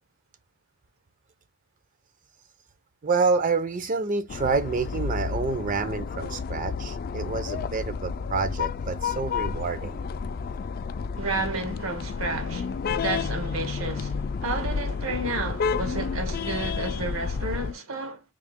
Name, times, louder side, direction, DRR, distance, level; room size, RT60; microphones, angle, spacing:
voice 1, 3.0-10.0, right 4 dB, 40° right, 0.5 m, -28 dB
sound 1, 4.3-17.7, left 5 dB, 45° left, 0.3 m, -31 dB
voice 2, 11.2-18.2, right 2 dB, 80° right, 1.2 m, -31 dB
3.8 x 2.7 x 3.5 m
head